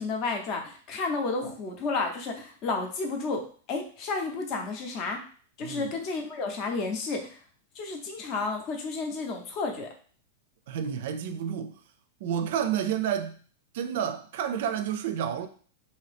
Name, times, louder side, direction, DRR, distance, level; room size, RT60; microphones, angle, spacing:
voice 1, 0.0-5.2 5.6-7.4 7.7-9.9, left 3 dB, 35° left, 0.7 m, -31 dB
voice 2, 5.6-6.0 10.7-11.7 12.2-13.4 13.7-15.5, right 9 dB, 60° right, 0.4 m, -30 dB
2.8 x 2.7 x 3.4 m
supercardioid pair, 150°, 0 cm